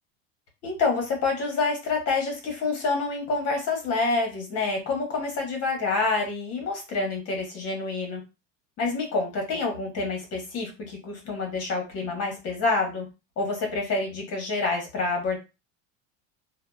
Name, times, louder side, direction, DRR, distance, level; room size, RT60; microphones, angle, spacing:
voice 1, 0.6-8.2 8.8-13.0 13.4-15.4, left 3 dB, 40° left, 1 dB, 1.0 m, -27 dB
2.7 x 2.1 x 2.2 m, 0.28 s
cardioid pair, 150°, 40 cm